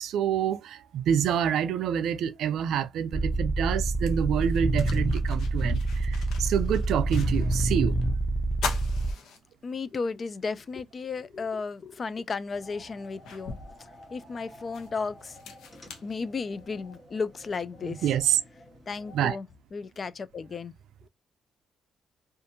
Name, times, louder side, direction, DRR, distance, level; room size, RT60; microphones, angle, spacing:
voice 1, 0.0-8.0 17.8-18.4 19.1-19.4, right 9 dB, 80° right, 0.4 m, -27 dB
sound 1, 3.1-9.1, right 2 dB, 15° right, 0.5 m, -27 dB
sound 2, 3.7-3.8 4.3-7.7 8.0-8.1 8.5-10.0 10.5-10.6 12.0-12.1 12.6-16.8, left 5 dB, 75° left, 0.7 m, -41 dB
voice 2, 9.6-13.6 14.1-15.4 16.0-18.0 18.9-19.5 19.7-20.7, left 4 dB, 40° left, 0.3 m, -34 dB
sound 3, 12.5-19.2, left 1 dB, 20° left, 1.2 m, -52 dB
2.6 x 2.4 x 2.6 m
cardioid pair, 90°, 0 cm